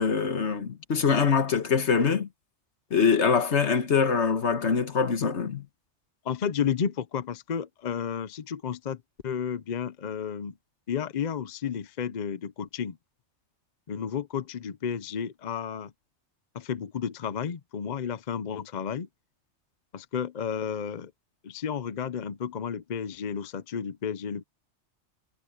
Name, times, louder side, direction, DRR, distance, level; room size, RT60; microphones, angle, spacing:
voice 1, 0.0-2.3 2.9-5.7, left 6 dB, 70° left, 1.7 m, -24 dB
voice 2, 6.2-10.6 10.9-13.0 13.9-15.9 16.5-19.1 19.9-21.1 21.4-24.4, left 7 dB, 45° left, 0.7 m, -32 dB
omnidirectional pair, 1.2 m